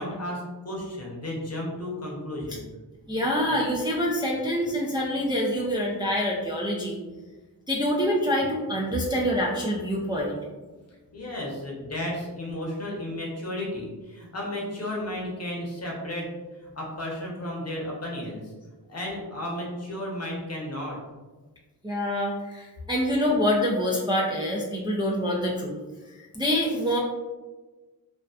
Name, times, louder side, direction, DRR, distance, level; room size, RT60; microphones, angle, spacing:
voice 1, 0.0-2.7 10.0-10.1 11.1-16.3 16.6-18.5 18.9-21.0, left 1 dB, 35° left, -3 dB, 0.9 m, -33 dB
voice 2, 3.1-7.0 7.7-10.4 21.8-25.8 26.3-27.0, equal, 10° right, -4 dB, 0.4 m, -26 dB
2.5 x 2.2 x 2.3 m, 1.2 s
cardioid pair, 40°, 41 cm